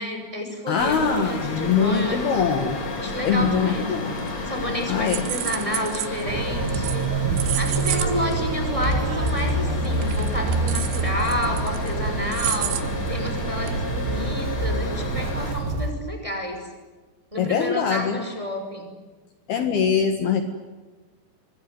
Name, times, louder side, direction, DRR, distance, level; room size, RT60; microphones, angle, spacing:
voice 1, 0.0-2.2 3.0-3.9 4.5-16.7 17.3-18.9, equal, 5° right, 4 dB, 5.8 m, -30 dB
voice 2, 0.7-2.8 3.2-4.1 4.9-5.2 17.4-18.2 19.5-20.4, left 6 dB, 65° left, 7 dB, 3.3 m, -22 dB
sound 1, 0.8-15.5, left 2 dB, 35° left, 4.5 m, -31 dB
sound 2, 4.2-4.6 4.9-6.2 6.7-7.1 7.4-8.1 8.3-8.4 8.8-8.9 9.3-9.5 9.9-11.9 12.3-12.8 13.3-13.4 13.7-13.8, right 13 dB, 80° right, 3.8 m, -30 dB
sound 3, 6.3-15.9, right 3 dB, 60° right, 4.0 m, -27 dB
25.0 x 24.0 x 9.5 m, 1.3 s
omnidirectional pair, 5.4 m